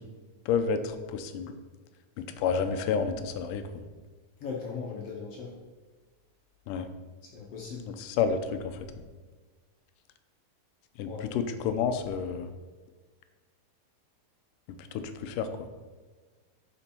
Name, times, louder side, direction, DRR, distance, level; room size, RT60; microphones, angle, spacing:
voice 1, 0.5-1.5 2.2-3.6 6.7-6.9 7.9-8.8 11.0-12.5 14.7-15.5, left 6 dB, 80° left, 9 dB, 2.2 m, -30 dB
voice 2, 4.4-5.5 7.3-7.9 11.1-11.3, left 5 dB, 65° left, -2 dB, 1.6 m, -38 dB
11.0 x 5.3 x 4.3 m, 1.4 s
omnidirectional pair, 3.9 m